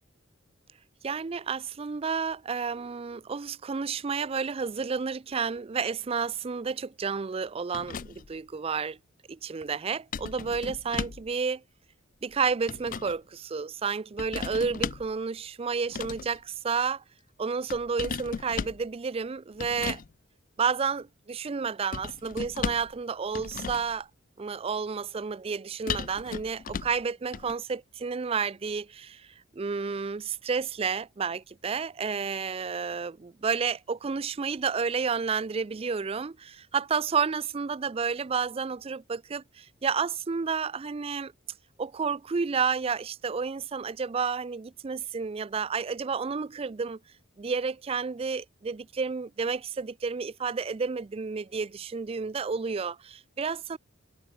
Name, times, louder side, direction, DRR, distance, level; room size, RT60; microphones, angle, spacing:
voice 1, 1.0-9.0 9.3-11.6 12.2-17.0 17.4-20.0 20.6-24.1 24.4-29.3 29.5-41.3 41.8-47.0 47.4-53.8, right 5 dB, 25° right, 0.4 m, -31 dB
sound 1, 7.7-8.4 10.1-11.3 12.3-13.2 14.2-15.1 15.8-16.4 17.7-18.9 19.6-20.1 21.9-23.0 23.3-24.0 25.9-27.0 27.3-27.5, left 5 dB, 40° left, 0.4 m, -36 dB
head